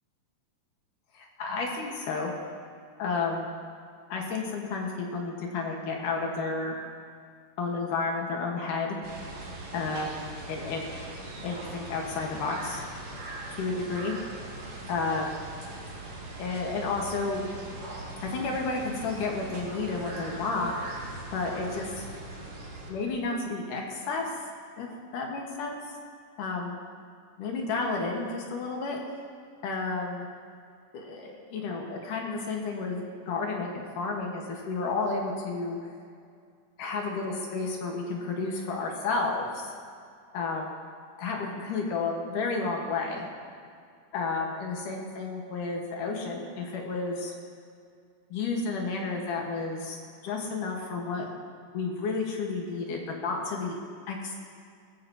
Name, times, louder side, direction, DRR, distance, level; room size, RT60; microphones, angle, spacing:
voice 1, 1.1-2.3 3.0-3.5 4.1-6.8 7.6-9.0 9.7-11.0 11.4-12.8 13.6-14.2 14.9-15.4 16.4-17.5 18.2-20.8 21.3-22.1 22.9-24.3 24.8-24.9 25.1-26.0 26.4-26.7 27.4-29.0 29.6-30.3 30.9-35.8 36.8-39.7 40.3-40.7 41.2-43.3 44.1-47.3 48.3-50.0 50.2-51.3 51.7-53.8 54.1-54.3, left 4 dB, 70° left, 0 dB, 2.9 m, -31 dB
sound 1, 9.0-22.9, right 2 dB, 55° right, 3.2 m, -41 dB
20.5 x 14.0 x 2.9 m, 2.2 s
omnidirectional pair, 4.1 m